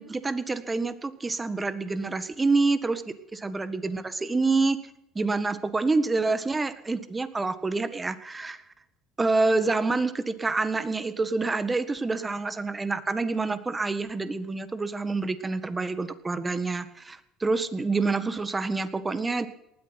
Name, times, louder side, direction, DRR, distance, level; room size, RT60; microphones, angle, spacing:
voice 1, 0.0-4.8 5.1-8.6 9.2-19.5, right 3 dB, 20° right, 12 dB, 1.6 m, -27 dB
19.0 x 13.0 x 5.8 m, 0.86 s
hypercardioid pair, 70°, 0 cm